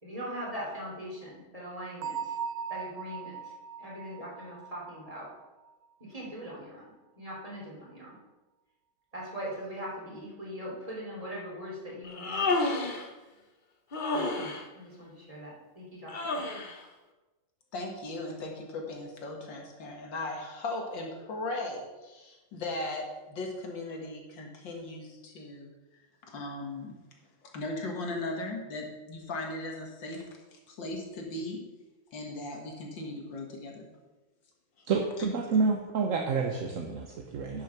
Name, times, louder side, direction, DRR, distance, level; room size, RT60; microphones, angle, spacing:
voice 1, 0.0-2.3 2.7-3.5 3.8-5.3 6.0-6.8 7.1-8.2 9.1-12.8 14.1-16.5, equal, 20° right, -5 dB, 3.3 m, -41 dB
Bell, 2.0-5.7, right 7 dB, 70° right, 1.3 m, -39 dB
Human voice, 12.0-13.1 13.9-14.7 16.1-16.8, left 3 dB, 35° left, 0.8 m, -30 dB
voice 2, 17.7-25.7 26.3-26.9 27.4-30.2 30.5-31.6 32.1-33.9, left 2 dB, 80° left, 1 dB, 2.4 m, -37 dB
voice 3, 34.9-37.6, right 4 dB, 55° right, 2 dB, 1.1 m, -29 dB
10.0 x 6.3 x 5.9 m, 1.1 s
omnidirectional pair, 2.0 m